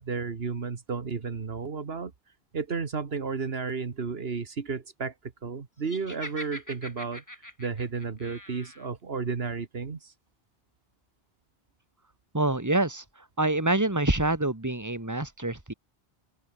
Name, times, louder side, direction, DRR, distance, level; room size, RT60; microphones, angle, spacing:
voice 1, 0.0-2.1 2.5-7.2 7.6-10.1, right 5 dB, 70° right, 1.7 m, -33 dB
Laughter, 5.9-8.9, left 1 dB, 15° left, 4.3 m, -43 dB
voice 2, 12.3-13.0 13.4-15.7, right 2 dB, 15° right, 2.2 m, -26 dB
open air
omnidirectional pair, 1.1 m